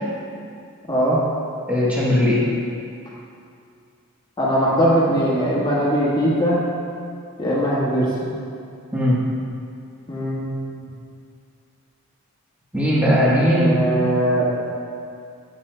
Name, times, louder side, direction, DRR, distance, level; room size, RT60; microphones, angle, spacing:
voice 1, 0.9-1.2 4.4-6.6 7.4-8.3 10.1-10.5 10.8-10.9 13.5-14.4, equal, 20° left, -6 dB, 1.4 m, -20 dB
voice 2, 1.7-2.5 8.9-9.2 12.7-13.8, equal, 5° right, -8 dB, 1.0 m, -18 dB
12.0 x 7.4 x 2.2 m, 2.4 s
head